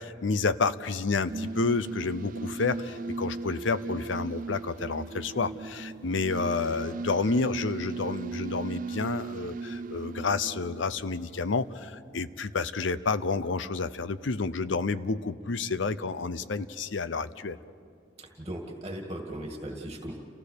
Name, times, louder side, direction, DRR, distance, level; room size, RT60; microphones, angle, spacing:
voice 1, 0.0-17.6, left 4 dB, 80° left, 14 dB, 0.7 m, -30 dB
sound 1, 1.1-11.5, right 3 dB, 45° right, 0.4 m, -37 dB
voice 2, 18.2-20.2, right 1 dB, 20° right, 1 dB, 2.1 m, -38 dB
29.0 x 16.5 x 6.6 m, 2.4 s
head